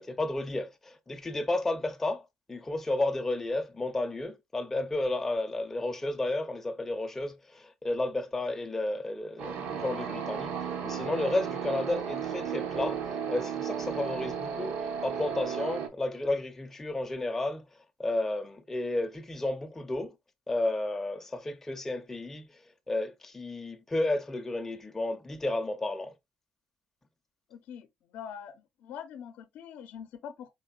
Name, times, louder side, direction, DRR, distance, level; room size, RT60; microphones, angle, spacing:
voice 1, 0.0-2.2 2.5-13.0 13.3-14.8 15.0-17.7 18.0-20.1 20.5-22.5 22.9-26.1, left 2 dB, 10° left, 0.6 m, -32 dB
sound 1, 9.4-15.9, right 7 dB, 60° right, 0.8 m, -34 dB
voice 2, 27.5-30.5, left 8 dB, 65° left, 0.6 m, -44 dB
4.3 x 3.6 x 2.3 m
cardioid pair, 165°, 3 cm